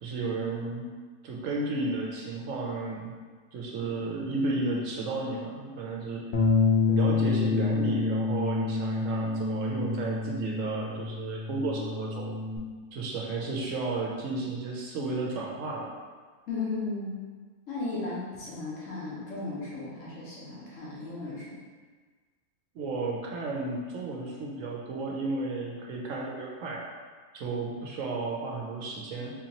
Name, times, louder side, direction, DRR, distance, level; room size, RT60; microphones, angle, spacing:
voice 1, 0.0-0.8 1.2-3.1 3.5-6.2 6.9-12.3 12.9-15.9 22.7-26.8 27.3-29.3, right 3 dB, 70° right, -3 dB, 0.9 m, -33 dB
Bass guitar, 6.3-12.6, left 4 dB, 80° left, 0.4 m, -27 dB
voice 2, 16.5-17.2 17.7-21.6, left 3 dB, 60° left, -6 dB, 1.2 m, -35 dB
3.9 x 2.8 x 2.8 m, 1.5 s
omnidirectional pair, 1.5 m